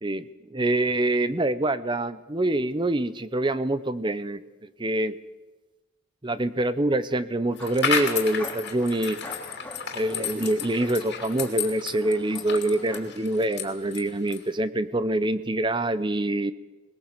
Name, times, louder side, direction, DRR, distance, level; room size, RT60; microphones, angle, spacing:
voice 1, 0.0-5.2 6.2-9.2 9.9-16.5, right 1 dB, 20° right, 14 dB, 0.7 m, -25 dB
sound 1, 7.5-13.1, left 1 dB, 5° left, 3.3 m, -43 dB
sound 2, 7.6-14.5, left 7 dB, 50° left, 2.9 m, -32 dB
21.0 x 20.5 x 7.4 m, 1.2 s
head